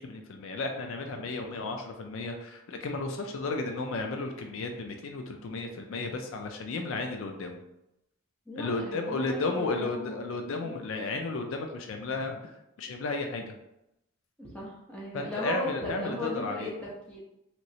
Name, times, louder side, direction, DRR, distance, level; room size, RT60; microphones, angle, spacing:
voice 1, 0.0-7.6 8.6-12.5 12.8-13.5 15.1-16.7, left 3 dB, 65° left, 4 dB, 0.4 m, -33 dB
voice 2, 8.5-10.2 10.6-10.8 14.4-17.2, left 1 dB, 5° left, -6 dB, 0.8 m, -37 dB
3.1 x 3.0 x 2.7 m, 0.87 s
head